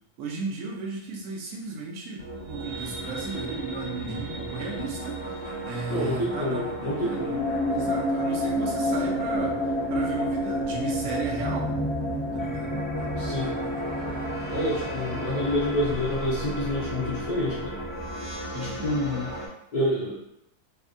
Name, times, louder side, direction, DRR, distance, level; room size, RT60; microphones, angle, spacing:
voice 1, 0.2-6.6 7.0-7.3 7.7-9.6 9.9-11.7 12.3-12.9 18.5-18.9, right 4 dB, 65° right, -1 dB, 0.9 m, -34 dB
sound 1, 2.2-19.5, equal, 25° right, 0.6 m, -31 dB
voice 2, 5.9-7.4 13.2-13.5 14.5-17.8 18.5-19.3 19.7-20.1, left 1 dB, 45° left, -7 dB, 0.6 m, -28 dB
3.3 x 2.6 x 2.5 m, 0.79 s
omnidirectional pair, 1.7 m